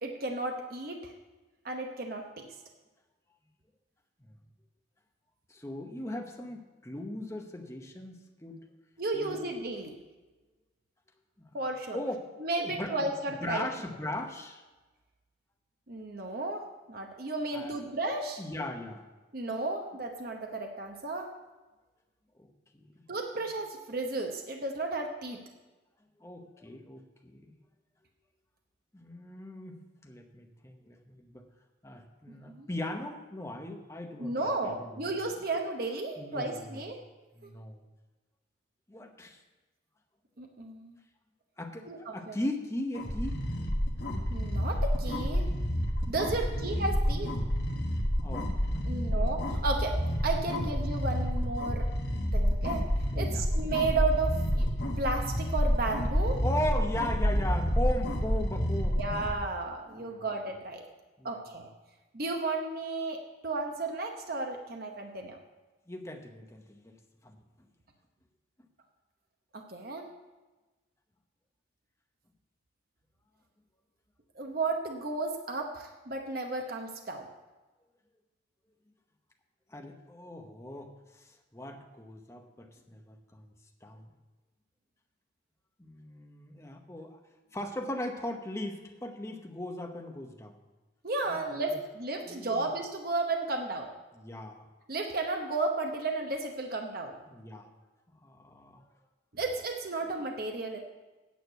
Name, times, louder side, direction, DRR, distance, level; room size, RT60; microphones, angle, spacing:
voice 1, 0.0-1.1 1.6-2.5 9.0-10.0 11.5-12.0 12.4-13.6 15.9-18.4 19.3-21.3 23.1-25.4 32.5-32.7 34.2-37.0 40.4-41.0 41.9-42.4 44.3-45.5 46.1-47.4 48.9-50.0 50.2-51.9 52.3-52.8 53.2-54.7 55.0-56.4 59.0-60.8 61.2-61.7 62.1-65.4 69.5-70.1 74.3-77.3 91.0-93.9 94.9-97.2 99.3-100.8, right 3 dB, 50° right, 3 dB, 0.9 m, -33 dB
voice 2, 5.5-8.6 9.1-9.5 11.4-11.5 11.9-12.2 12.6-13.1 13.4-14.6 17.5-17.8 18.4-19.1 22.4-23.0 26.2-27.5 28.9-31.5 31.8-35.1 36.2-36.8 37.4-37.8 38.9-39.4 41.6-43.4 46.4-46.6 48.2-48.9 49.1-49.3 50.6-50.7 53.1-53.5 56.4-59.0 60.0-60.2 61.2-61.4 65.9-67.0 67.2-67.4 79.7-83.5 83.8-84.0 85.8-87.2 87.5-90.6 91.3-91.8 92.3-92.7 94.2-94.7 97.3-97.7 98.2-98.8, left 1 dB, 15° left, 3 dB, 0.9 m, -38 dB
saw brain, 42.9-59.3, equal, 55° left, 1.4 m, -29 dB
9.2 x 6.6 x 8.0 m, 1.2 s
head